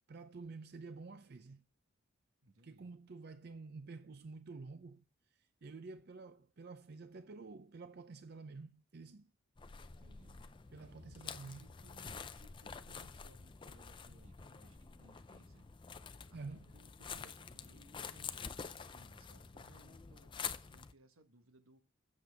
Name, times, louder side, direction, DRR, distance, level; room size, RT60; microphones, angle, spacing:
voice 1, 0.1-1.7 2.6-5.0 5.4-9.3 10.7-11.7 16.3-16.7, right 3 dB, 50° right, 0.5 m, -50 dB
voice 2, 2.4-2.9 9.9-10.4 11.2-15.7 16.3-21.8, right 2 dB, 85° right, 1.1 m, -65 dB
sound 1, 9.6-20.9, left 6 dB, 25° left, 0.4 m, -48 dB
8.3 x 7.0 x 3.4 m
head